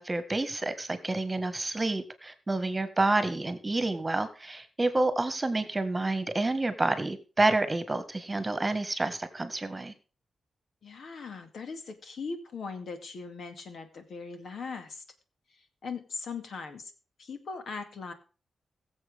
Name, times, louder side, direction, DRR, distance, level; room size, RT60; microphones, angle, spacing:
voice 1, 0.0-9.9, right 2 dB, 20° right, 10 dB, 1.6 m, -29 dB
voice 2, 10.8-15.0 15.5-16.9 17.2-18.1, left 4 dB, 65° left, 7 dB, 2.2 m, -40 dB
21.5 x 7.4 x 3.6 m, 0.37 s
wide cardioid pair, 115°, 0 cm